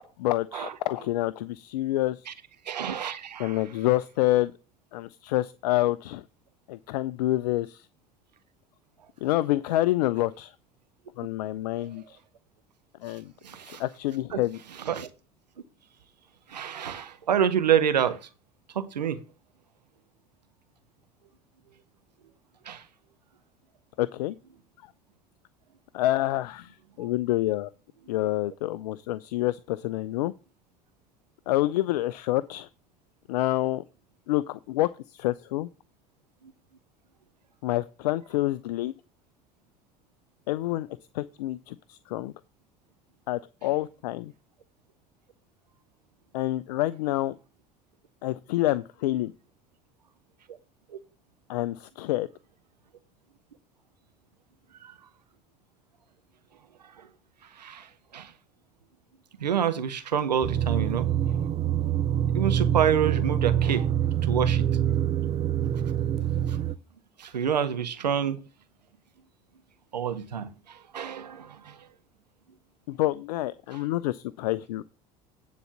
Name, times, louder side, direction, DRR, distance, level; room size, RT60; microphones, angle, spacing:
voice 1, 0.2-2.3 3.4-4.5 4.9-6.2 6.7-7.9 9.2-10.5 11.2-12.2 13.0-13.3 13.6-14.6 24.0-24.4 25.9-27.7 28.1-30.3 31.5-32.7 33.3-33.8 34.3-35.7 37.6-38.9 40.5-40.9 41.1-42.3 43.3-44.3 46.3-47.4 48.2-49.3 51.5-52.3 72.9-74.8, left 16 dB, 75° left, 0.4 m, -27 dB
voice 2, 2.7-3.6 13.4-13.8 14.3-14.4 14.9-15.1 16.5-18.2 18.7-19.2 22.7-22.8 27.0-27.1 50.5-50.6 50.9-51.0 54.8-54.9 57.0-57.1 57.6-58.3 59.4-61.1 62.3-63.9 64.2-64.6 66.5-66.6 67.2-68.4 69.9-71.9, right 8 dB, 85° right, 0.8 m, -28 dB
sound 1, 60.4-66.7, right 9 dB, 30° right, 0.5 m, -25 dB
9.2 x 4.1 x 7.1 m
hypercardioid pair, 65°, 21 cm